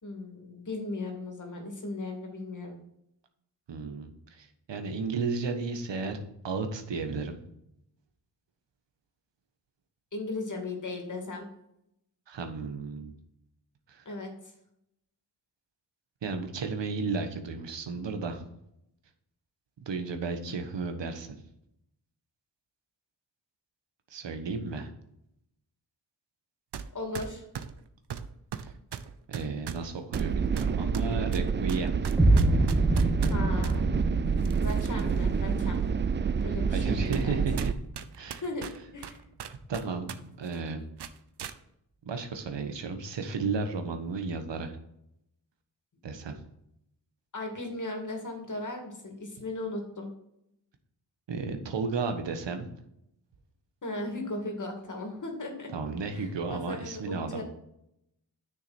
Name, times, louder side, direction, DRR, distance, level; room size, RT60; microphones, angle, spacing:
voice 1, 0.0-2.8 10.1-11.5 14.0-14.3 26.9-27.4 33.3-33.9 34.6-35.8 36.4-37.4 38.4-39.2 47.3-50.1 53.8-55.7 56.1-57.4, left 2 dB, 45° left, 2 dB, 2.6 m, -37 dB
voice 2, 3.7-7.4 12.3-13.1 13.9-14.0 16.2-18.4 19.8-21.4 24.1-24.9 28.6-28.7 29.3-32.0 35.0-35.1 36.7-37.7 38.1-38.4 39.7-40.9 42.0-44.7 46.0-46.4 51.3-52.7 55.7-57.4, right 4 dB, 85° right, 6 dB, 1.4 m, -33 dB
sound 1, 26.7-26.9 27.1-33.8 34.4-35.2 35.6-35.7 36.4-36.5 37.1-37.3 37.6-40.2 40.4-40.6 41.0-41.6, right 8 dB, 70° right, 0.8 m, -39 dB
sound 2, 30.1-37.7, right 6 dB, 30° right, 0.3 m, -28 dB
sound 3, 32.2-38.2, right 1 dB, 5° right, 1.6 m, -28 dB
9.6 x 6.5 x 4.4 m, 0.79 s
wide cardioid pair, 95°, 42 cm